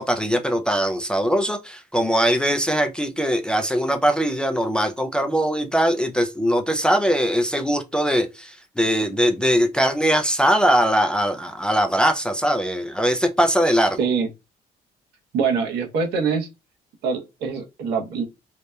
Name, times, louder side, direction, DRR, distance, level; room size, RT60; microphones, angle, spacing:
voice 1, 0.0-14.0, equal, 5° left, 0.3 m, -21 dB
voice 2, 14.0-14.3 15.3-16.5 17.0-18.2, right 5 dB, 80° right, 0.9 m, -24 dB
2.8 x 2.1 x 2.2 m
cardioid pair, 110°, 17 cm